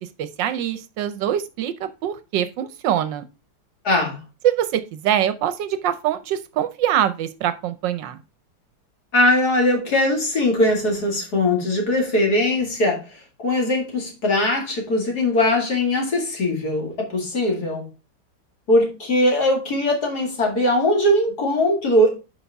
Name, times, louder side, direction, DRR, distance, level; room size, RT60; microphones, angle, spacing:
voice 1, 0.0-3.2 4.4-8.2, right 10 dB, 75° right, 1.3 m, -24 dB
voice 2, 3.8-4.2 9.1-13.0 13.4-17.9 18.7-22.1, left 1 dB, 55° left, 2.6 m, -20 dB
8.1 x 5.5 x 3.4 m
omnidirectional pair, 2.1 m